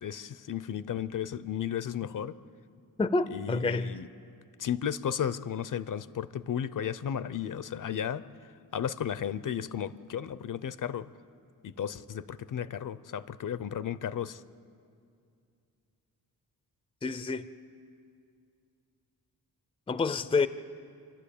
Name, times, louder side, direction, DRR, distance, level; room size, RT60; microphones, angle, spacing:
voice 1, 0.0-2.4 3.3-4.1 4.6-11.1 11.6-14.4, left 9 dB, 60° left, 0.6 m, -34 dB
voice 2, 3.0-4.0 17.0-17.5 19.9-20.5, left 3 dB, 15° left, 0.5 m, -28 dB
28.0 x 12.0 x 8.5 m
wide cardioid pair, 155°, 36 cm